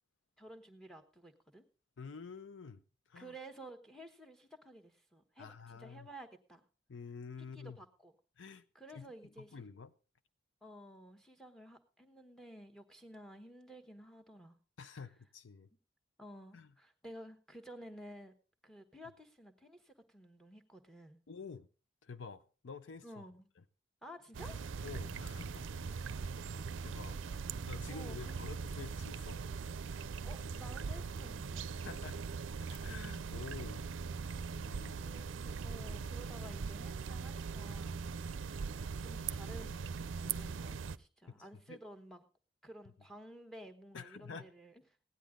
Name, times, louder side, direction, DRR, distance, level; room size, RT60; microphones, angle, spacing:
voice 1, 0.4-1.6 3.1-6.6 7.4-8.1 8.7-9.6 10.6-14.6 14.8-15.0 16.2-18.3 18.6-21.2 23.0-23.5 24.0-24.6 26.9-28.5 30.2-31.7 35.0-38.0 38.7-42.2 42.6-44.8, right 1 dB, 5° left, 1.1 m, -53 dB
voice 2, 2.0-2.8 3.1-3.3 5.4-6.1 6.9-7.8 8.4-8.6 8.9-9.1 9.5-9.9 14.8-15.7 16.5-16.7 21.3-21.7 22.0-23.3 24.8-25.8 26.8-27.1 27.6-29.4 31.8-32.2 32.7-33.8 34.5-35.0 35.9-36.1 41.3-41.4 41.7-41.8 43.9-44.5, left 5 dB, 80° left, 0.5 m, -48 dB
sound 1, 24.3-41.0, right 5 dB, 85° right, 0.5 m, -41 dB
16.0 x 10.0 x 3.7 m
head